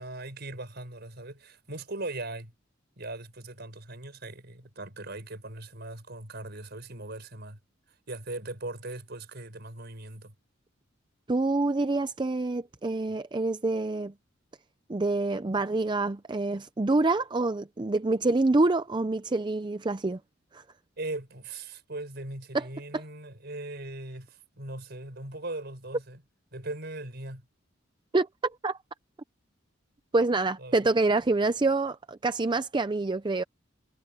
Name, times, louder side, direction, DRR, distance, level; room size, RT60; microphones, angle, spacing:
voice 1, 0.0-2.5 3.0-7.6 8.1-10.3 21.0-26.2 26.5-27.5 30.6-30.8, right 2 dB, 55° right, 5.7 m, -39 dB
voice 2, 11.3-14.1 14.9-20.2 20.5-20.6 22.5-22.7 22.9-23.0 28.1-28.8 30.1-33.4, right 2 dB, 25° right, 0.5 m, -26 dB
head